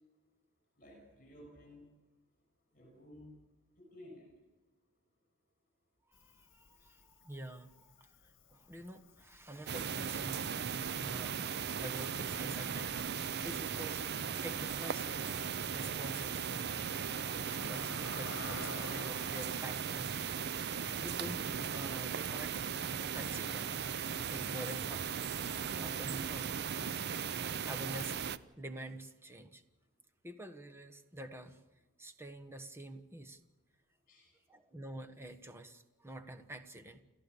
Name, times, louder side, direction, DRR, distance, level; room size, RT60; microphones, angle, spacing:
voice 1, 0.8-1.9 2.7-3.4 3.9-4.3 34.1-34.3, left 1 dB, 40° left, 1 dB, 6.6 m, -54 dB
Cricket, 6.1-19.8, left 4 dB, 60° left, 1.9 m, -54 dB
voice 2, 6.1-13.0 13.4-14.0 14.4-15.1 15.7-16.6 17.7-20.1 20.5-22.6 23.1-23.8 24.3-25.2 25.8-26.7 27.2-27.3 27.6-28.2 28.6-29.6 30.2-31.6 32.0-33.4 34.5-37.0, right 1 dB, 10° right, 6 dB, 1.3 m, -47 dB
sound 1, 9.7-28.4, right 7 dB, 50° right, 0.6 m, -37 dB
29.5 x 14.0 x 6.9 m, 1.2 s
head